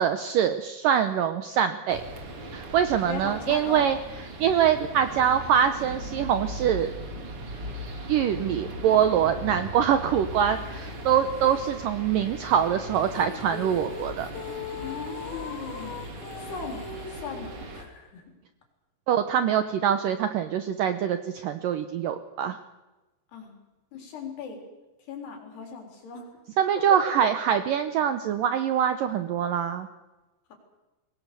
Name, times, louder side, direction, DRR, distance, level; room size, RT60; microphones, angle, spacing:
voice 1, 0.0-2.0 2.5-4.0 4.4-6.9 8.1-14.3 19.1-22.6 26.6-29.9, right 9 dB, 75° right, 9 dB, 2.0 m, -24 dB
sound 1, 1.9-17.8, right 1 dB, 40° right, 2.9 m, -38 dB
voice 2, 3.1-3.9 14.7-16.0 16.4-16.8 17.1-18.3 23.3-23.5 23.9-24.6 25.0-26.3, left 6 dB, 70° left, 3 dB, 6.0 m, -38 dB
sound 2, 13.1-17.7, left 6 dB, 90° left, 4.0 m, -39 dB
23.0 x 19.5 x 6.9 m, 1.1 s
omnidirectional pair, 5.0 m